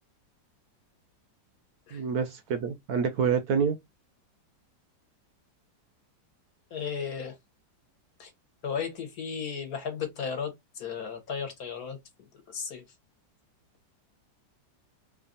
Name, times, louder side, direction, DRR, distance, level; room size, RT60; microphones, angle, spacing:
voice 1, 1.9-3.8, right 6 dB, 70° right, 1.0 m, -27 dB
voice 2, 6.7-7.3 8.2-8.3 8.6-12.3 12.5-12.8, left 6 dB, 60° left, 1.3 m, -35 dB
3.2 x 2.4 x 3.9 m
omnidirectional pair, 2.0 m